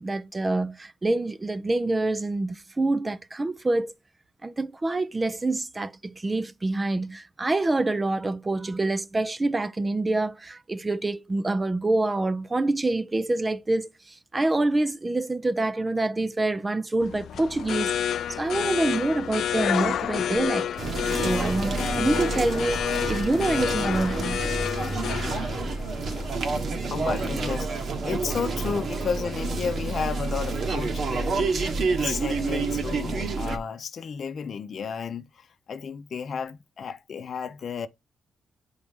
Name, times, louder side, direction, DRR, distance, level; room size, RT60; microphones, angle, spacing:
voice 1, 0.0-3.9 4.4-20.7 21.1-24.4, right 2 dB, 20° right, 0.4 m, -26 dB
sound 1, 17.0-26.6, left 9 dB, 80° left, 0.3 m, -29 dB
sound 2, 20.8-33.6, right 3 dB, 60° right, 1.4 m, -29 dB
voice 2, 26.9-31.6 31.9-37.9, left 6 dB, 55° left, 0.7 m, -32 dB
9.3 x 3.9 x 3.6 m
cardioid pair, 110°, 0 cm